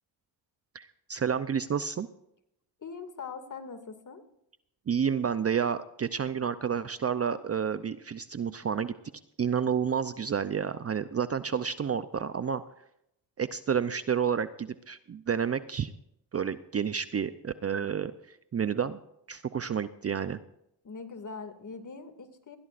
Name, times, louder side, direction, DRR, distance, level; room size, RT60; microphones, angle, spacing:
voice 1, 0.7-2.1 4.9-8.9 9.4-12.6 13.4-15.9 16.3-19.0 19.3-20.4, right 7 dB, 30° right, 13 dB, 0.6 m, -30 dB
voice 2, 2.8-4.2 20.8-22.6, left 5 dB, 40° left, 7 dB, 2.3 m, -42 dB
21.5 x 15.0 x 2.6 m, 0.78 s
cardioid pair, 85°, 48 cm